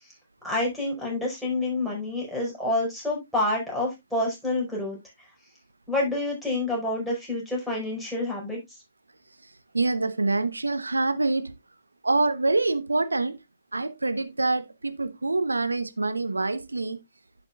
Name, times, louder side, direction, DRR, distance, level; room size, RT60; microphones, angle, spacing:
voice 1, 0.4-5.0 5.9-8.6, left 2 dB, ahead, 5.3 m, -28 dB
voice 2, 9.7-11.5 12.0-13.4 13.7-17.0, right 3 dB, 85° right, 0.9 m, -26 dB
11.0 x 6.4 x 2.4 m
figure-of-eight pair, 120°, 0 cm